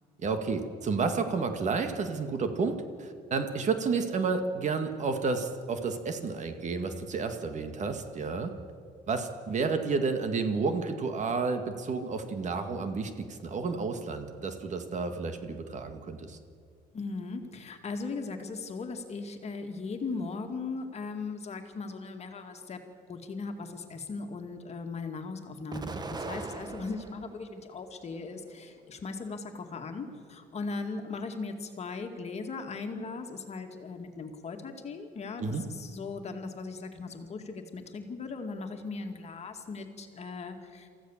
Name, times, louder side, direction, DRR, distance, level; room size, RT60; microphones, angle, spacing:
voice 1, 0.2-8.5 9.1-16.4 35.4-35.6, right 4 dB, 45° right, 7 dB, 1.9 m, -31 dB
voice 2, 16.9-22.8 23.1-40.9, left 4 dB, 40° left, 5 dB, 2.2 m, -38 dB
Explosion, 25.7-27.4 27.9-28.8, right 3 dB, 25° right, 1.3 m, -40 dB
23.5 x 15.0 x 7.3 m, 2.1 s
cardioid pair, 110°, 17 cm